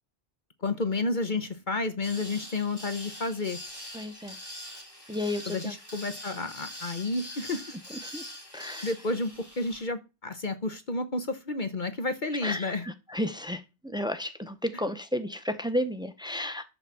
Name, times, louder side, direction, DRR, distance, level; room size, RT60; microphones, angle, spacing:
voice 1, 0.6-3.6 5.5-7.8 8.5-12.9 14.7-14.8, left 3 dB, 45° left, 1.1 m, -31 dB
sound 1, 2.0-9.8, equal, 20° left, 3.2 m, -43 dB
voice 2, 3.9-4.4 5.1-5.7 8.1-8.2 8.5-8.9 12.4-12.8 13.1-16.6, left 1 dB, 5° right, 0.8 m, -32 dB
11.0 x 4.2 x 7.0 m
omnidirectional pair, 1.2 m